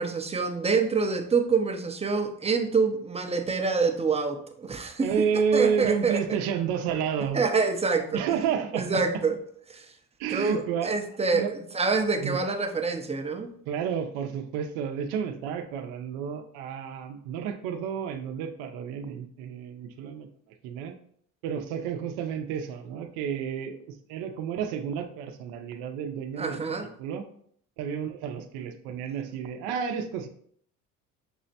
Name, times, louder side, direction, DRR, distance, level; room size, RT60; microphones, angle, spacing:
voice 1, 0.0-5.1 5.5-6.2 7.3-8.2 8.7-9.4 9.7-9.9 10.3-13.5 26.4-26.9, right 4 dB, 15° right, 5 dB, 0.5 m, -26 dB
voice 2, 5.0-7.4 8.1-9.0 10.2-10.9 11.3-11.5 12.2-12.4 13.7-20.3 20.6-20.9 21.4-27.3 27.8-30.3, right 7 dB, 80° right, 7 dB, 0.6 m, -30 dB
6.1 x 2.1 x 2.7 m, 0.63 s
supercardioid pair, 80°, 37 cm